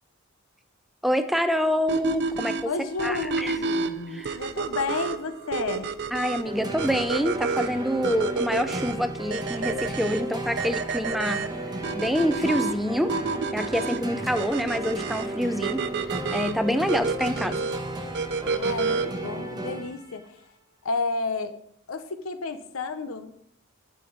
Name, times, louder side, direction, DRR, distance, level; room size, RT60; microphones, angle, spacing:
voice 1, 1.0-2.7 3.0-3.5 4.1-4.4 6.1-11.4 11.9-13.1 13.5-15.8 16.3-17.6, equal, ahead, 9 dB, 0.4 m, -26 dB
sound 1, 1.9-19.3, right 4 dB, 55° right, 0.5 m, -30 dB
voice 2, 2.6-6.0 18.4-20.3 20.8-21.6 21.9-23.3, left 4 dB, 85° left, 10 dB, 0.8 m, -31 dB
sound 2, 6.4-20.2, right 1 dB, 20° right, 0.9 m, -34 dB
10.5 x 5.9 x 4.0 m, 0.71 s
head